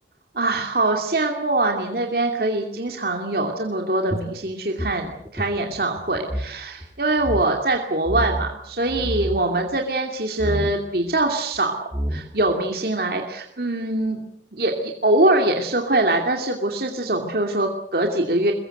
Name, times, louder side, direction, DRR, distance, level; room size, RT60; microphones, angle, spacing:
voice 1, 0.3-11.7 12.1-14.2 14.5-18.5, right 2 dB, 55° right, 2 dB, 2.5 m, -23 dB
sound 1, 4.1-6.5 6.8-6.9 7.2-7.5 8.0-8.5 8.9-9.4 10.4-10.8 11.5-11.6 11.9-12.5, equal, 15° right, 2.6 m, -28 dB
23.5 x 21.5 x 7.9 m, 0.75 s
head